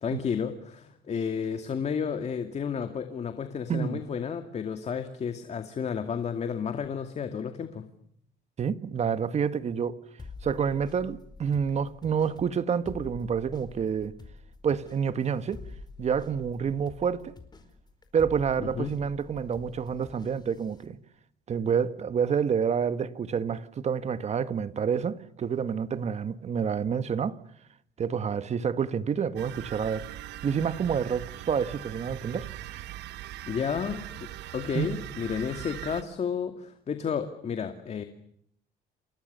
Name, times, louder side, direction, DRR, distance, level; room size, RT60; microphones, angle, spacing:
voice 1, 0.0-7.9 18.6-18.9 33.5-38.0, left 7 dB, 40° left, 2.4 m, -32 dB
voice 2, 3.7-4.0 8.6-10.0 10.4-14.1 14.6-15.6 16.0-17.3 18.1-21.0 21.5-27.4 28.0-30.1 30.4-32.5 34.7-34.9, right 7 dB, 40° right, 1.6 m, -28 dB
sound 1, 10.2-20.9, left 3 dB, 25° left, 4.6 m, -47 dB
sound 2, 29.4-36.0, right 14 dB, 80° right, 1.3 m, -41 dB
29.0 x 28.0 x 6.8 m
cardioid pair, 110°, 17 cm